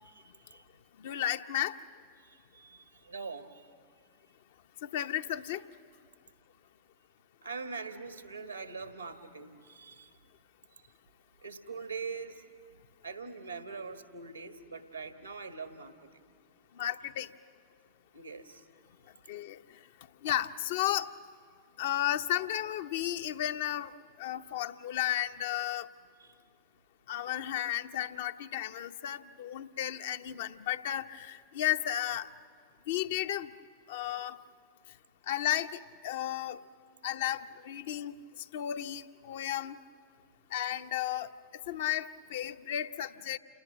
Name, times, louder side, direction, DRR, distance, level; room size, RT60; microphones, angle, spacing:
voice 1, 0.0-0.6 2.2-3.7 7.4-10.1 11.4-12.4 13.0-16.3 18.1-18.6 26.2-26.4, right 4 dB, 80° right, 8 dB, 1.6 m, -43 dB
voice 2, 1.0-1.8 4.8-5.6 16.7-17.3 19.3-19.6 20.2-21.1 21.8-23.9 24.2-25.9 27.1-32.3 32.9-33.5 33.9-34.4 35.3-36.6 37.0-39.8 40.5-43.4, left 12 dB, 55° left, 9 dB, 0.7 m, -33 dB
28.5 x 19.0 x 9.3 m, 2.1 s
figure-of-eight pair, 90°, 0 cm